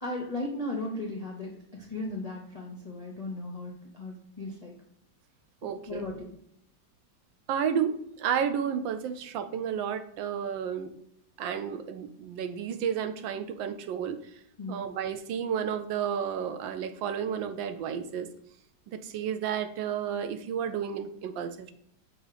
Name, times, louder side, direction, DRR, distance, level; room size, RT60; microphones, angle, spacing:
voice 1, 0.0-4.7 5.6-6.2 14.6-14.8, left 2 dB, 45° left, -1 dB, 0.5 m, -36 dB
voice 2, 5.6-6.0 7.5-10.9 11.4-14.2 14.7-18.3 18.9-21.7, right 8 dB, 80° right, 8 dB, 1.3 m, -32 dB
6.4 x 3.0 x 4.8 m, 0.71 s
omnidirectional pair, 2.0 m